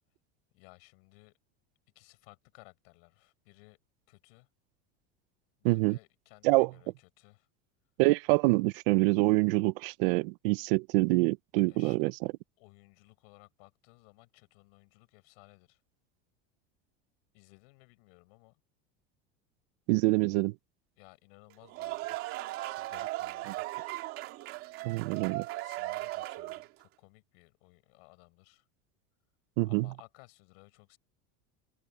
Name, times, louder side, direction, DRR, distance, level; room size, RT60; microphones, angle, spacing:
voice 1, 0.5-1.3 2.0-3.8 4.1-4.5 5.6-7.5 11.7-12.1 12.6-15.8 17.3-18.6 21.0-22.3 22.7-23.6 25.6-28.6 29.6-31.0, left 31 dB, 60° left, 7.3 m, -59 dB
voice 2, 5.6-6.0 6.4-6.7 8.0-12.1 19.9-20.5 24.8-25.5 29.6-29.9, right 23 dB, 55° right, 0.6 m, -26 dB
sound 1, 21.5-26.8, right 18 dB, 40° right, 2.5 m, -37 dB
open air
supercardioid pair, 170°, 33 cm